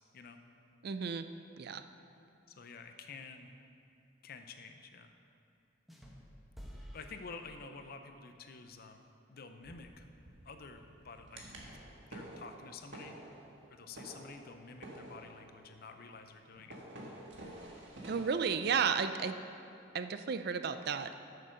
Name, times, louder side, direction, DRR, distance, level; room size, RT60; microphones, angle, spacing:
voice 1, 0.8-1.3 1.6-1.8 18.1-19.4 19.9-21.1, right 6 dB, 55° right, 10 dB, 0.4 m, -33 dB
voice 2, 2.5-3.5 4.2-5.1 6.9-10.1 10.4-11.8 12.1-13.2 13.7-16.8, left 4 dB, 55° left, 6 dB, 0.7 m, -50 dB
sound 1, 5.9-8.1, equal, ahead, 0.9 m, -52 dB
sound 2, 9.6-18.4, right 1 dB, 75° right, 1.6 m, -51 dB
8.5 x 6.7 x 6.4 m, 2.7 s
head